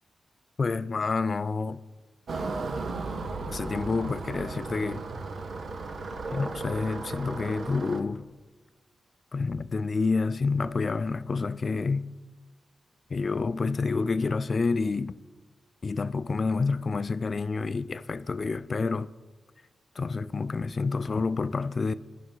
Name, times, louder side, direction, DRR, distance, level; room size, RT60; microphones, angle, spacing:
voice 1, 0.6-1.8 3.5-5.0 6.3-8.3 9.3-12.1 13.1-15.1 15.8-19.1 20.0-21.9, left 4 dB, 45° left, 0.3 m, -28 dB
sound 1, 2.3-8.0, right 3 dB, 65° right, 0.7 m, -35 dB
11.0 x 5.7 x 3.9 m
cardioid pair, 70°, 0 cm